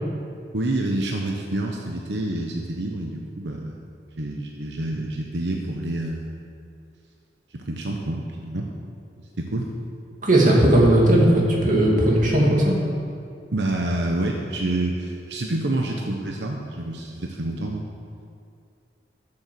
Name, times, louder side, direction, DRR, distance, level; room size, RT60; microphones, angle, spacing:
voice 1, 0.5-3.8 4.1-6.3 7.5-8.7 9.4-9.7 13.5-17.9, right 1 dB, 85° right, 1 dB, 1.0 m, -28 dB
voice 2, 10.2-12.8, right 1 dB, 45° right, -3 dB, 2.3 m, -17 dB
12.0 x 7.1 x 7.0 m, 2.4 s
head